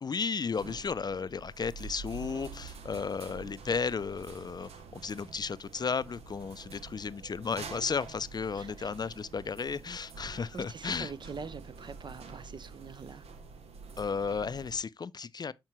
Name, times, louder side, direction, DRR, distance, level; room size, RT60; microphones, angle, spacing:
voice 1, 0.0-11.1 14.0-15.5, left 5 dB, 40° left, 0.4 m, -34 dB
sound 1, 0.5-14.8, right 4 dB, 75° right, 0.9 m, -47 dB
voice 2, 8.5-8.9 10.5-13.3, right 5 dB, 45° right, 0.6 m, -44 dB
7.3 x 4.4 x 3.0 m
supercardioid pair, 45°, 11 cm